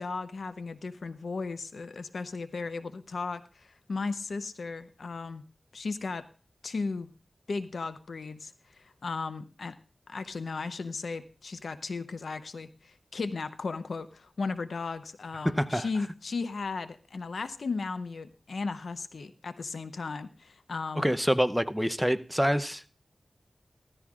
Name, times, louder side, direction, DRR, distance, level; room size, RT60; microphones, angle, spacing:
voice 1, 0.0-5.4 5.7-6.2 6.6-7.1 7.5-8.5 8.8-9.8 10.1-21.1, left 4 dB, 90° left, 11 dB, 0.7 m, -36 dB
voice 2, 15.4-15.9 21.0-22.8, equal, ahead, 12 dB, 0.6 m, -26 dB
14.5 x 14.5 x 2.4 m, 0.36 s
wide cardioid pair, 65°, 0 cm